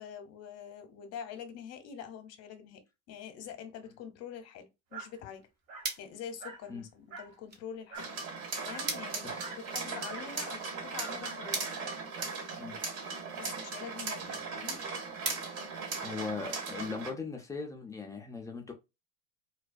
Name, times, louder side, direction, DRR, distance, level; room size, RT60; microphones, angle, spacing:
voice 1, 0.0-5.5 6.0-8.1 8.6-11.6 13.4-15.4, left 8 dB, 35° left, 0.7 m, -45 dB
Dog, 4.9-5.1 5.7-5.9 6.4-6.7 7.1-7.4 7.9-8.2 8.7-8.9 9.4-9.7 10.0-10.3 11.0-12.5, right 4 dB, 70° right, 1.0 m, -46 dB
sound 1, 5.1-16.6, right 4 dB, 25° right, 0.8 m, -45 dB
sound 2, 7.9-17.1, right 4 dB, 55° right, 1.3 m, -38 dB
voice 2, 16.0-18.7, left 4 dB, 10° left, 0.3 m, -39 dB
2.2 x 2.2 x 2.5 m
hypercardioid pair, 85°, 42 cm